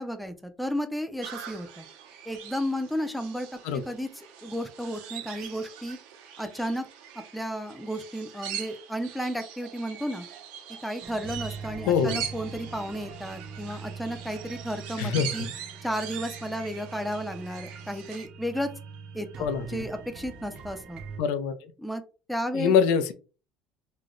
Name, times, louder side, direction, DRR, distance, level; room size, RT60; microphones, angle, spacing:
voice 1, 0.0-1.9 2.3-3.5 3.9-4.1 4.4-6.0 6.4-6.9 7.3-10.3 10.8-15.5 15.8-18.7 19.1-21.0 21.8-22.0 22.3-22.7, equal, ahead, 8 dB, 0.4 m, -33 dB
sound 1, 1.2-18.3, right 9 dB, 80° right, 0.7 m, -42 dB
sound 2, 11.0-21.2, right 5 dB, 40° right, 0.6 m, -42 dB
voice 2, 11.9-12.2 15.0-15.5 19.4-19.8 21.2-21.6 22.5-23.1, left 6 dB, 80° left, 10 dB, 0.5 m, -24 dB
3.2 x 2.1 x 3.7 m, 0.34 s
cardioid pair, 160°, 2 cm